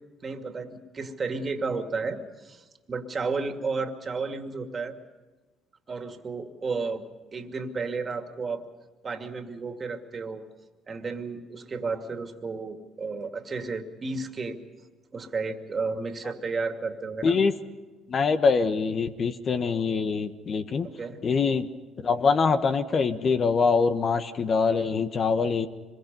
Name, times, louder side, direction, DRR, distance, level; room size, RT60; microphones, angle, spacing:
voice 1, 0.2-4.9 5.9-7.0 7.3-8.6 9.0-10.4 10.9-14.6 15.1-17.4 20.8-21.2, right 4 dB, 35° right, 6 dB, 2.4 m, -32 dB
voice 2, 17.2-17.5 18.1-20.9 21.2-21.7 22.0-25.7, left 5 dB, 50° left, 9 dB, 1.4 m, -24 dB
25.5 x 22.5 x 5.5 m, 1.3 s
supercardioid pair, 70°, 0 cm